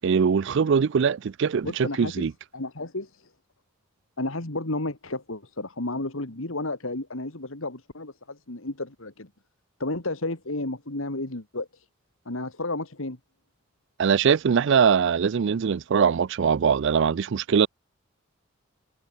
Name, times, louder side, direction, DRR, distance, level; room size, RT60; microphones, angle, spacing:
voice 1, 0.0-2.3 14.0-17.7, right 6 dB, 60° right, 0.4 m, -22 dB
voice 2, 1.6-2.3 2.5-3.2 4.2-9.3 9.8-11.8 12.3-13.2, left 2 dB, 70° left, 2.4 m, -32 dB
head